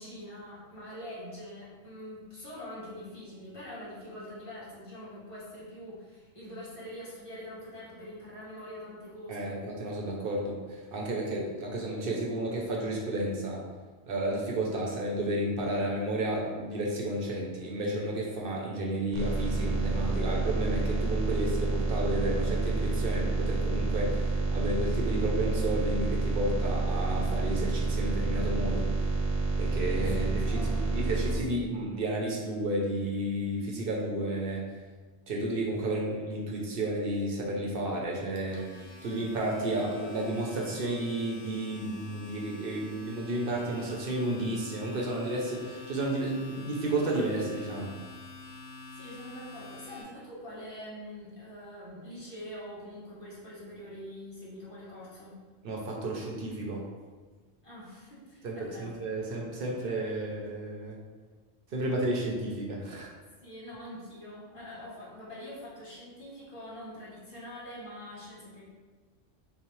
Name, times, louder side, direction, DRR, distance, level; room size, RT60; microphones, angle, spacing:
voice 1, 0.0-9.6 30.1-31.6 48.9-55.4 57.6-58.9 63.4-68.6, equal, 25° left, -8 dB, 1.2 m, -44 dB
voice 2, 9.3-13.6 14.1-28.9 29.6-34.6 35.3-38.6 39.0-47.9 55.6-56.8 58.4-61.0 61.7-63.1, right 1 dB, 55° right, -2 dB, 0.8 m, -32 dB
sound 1, 19.1-31.3, right 3 dB, 75° right, 1.1 m, -29 dB
Domestic sounds home sounds, 38.2-50.0, left 3 dB, 80° left, 1.1 m, -48 dB
5.6 x 2.0 x 3.1 m, 1.4 s
omnidirectional pair, 1.3 m